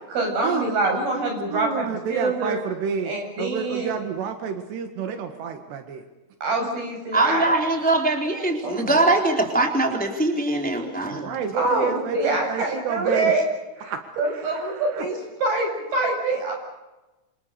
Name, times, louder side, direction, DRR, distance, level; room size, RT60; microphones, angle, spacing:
voice 1, 0.1-2.6 3.0-3.9 6.4-7.4 8.6-8.9 11.5-13.4 13.8-16.5, right 2 dB, 65° right, 2 dB, 9.7 m, -25 dB
voice 2, 1.5-6.1 11.1-13.3 13.9-15.1, right 6 dB, 85° right, 6 dB, 3.9 m, -30 dB
voice 3, 7.1-11.3, right 2 dB, ahead, 2 dB, 3.4 m, -22 dB
28.0 x 27.0 x 6.8 m, 1.1 s
omnidirectional pair, 4.7 m